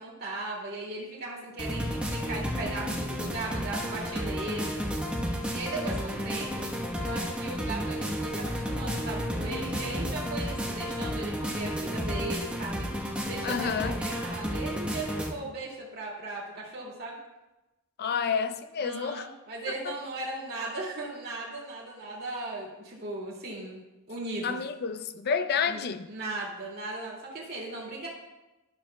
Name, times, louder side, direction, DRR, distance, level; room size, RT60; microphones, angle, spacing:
voice 1, 0.0-4.7 5.5-6.7 7.0-12.9 13.2-17.2 18.8-23.8 24.1-24.6 25.7-25.8 26.1-28.1, right 2 dB, 45° right, 2.3 m, -37 dB
sound 1, 1.6-15.3, equal, 5° right, 1.0 m, -32 dB
voice 2, 13.4-14.0 18.0-19.3 24.4-26.1, left 6 dB, 45° left, 0.4 m, -29 dB
12.0 x 7.1 x 2.2 m
head